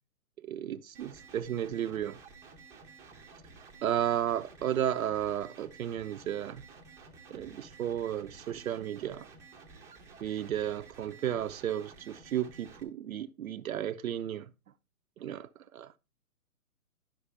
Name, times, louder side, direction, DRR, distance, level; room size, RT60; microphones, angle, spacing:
voice 1, 0.4-2.2 3.8-6.6 7.3-9.3 10.2-14.5 15.2-16.0, right 10 dB, 65° right, 0.7 m, -33 dB
sound 1, 0.9-12.8, right 4 dB, 5° right, 0.9 m, -53 dB
11.5 x 6.1 x 3.3 m
hypercardioid pair, 140°, 46 cm